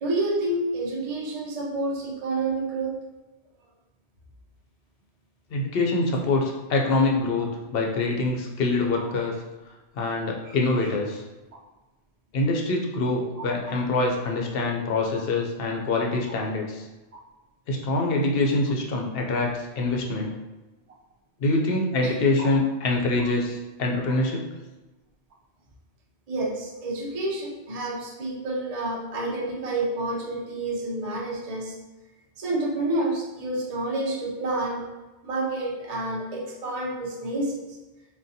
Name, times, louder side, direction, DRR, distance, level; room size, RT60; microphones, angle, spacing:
voice 1, 0.0-3.0 9.0-9.1 10.4-10.6 10.8-10.9 22.0-22.5 23.2-23.3 26.3-31.7 32.4-34.9 35.2-37.8, right 2 dB, 45° right, -2 dB, 0.5 m, -29 dB
voice 2, 5.5-9.4 10.0-11.2 12.3-16.9 17.7-20.4 21.4-24.6, left 2 dB, 65° left, 0 dB, 0.7 m, -25 dB
3.7 x 2.3 x 2.7 m, 1.1 s
omnidirectional pair, 1.2 m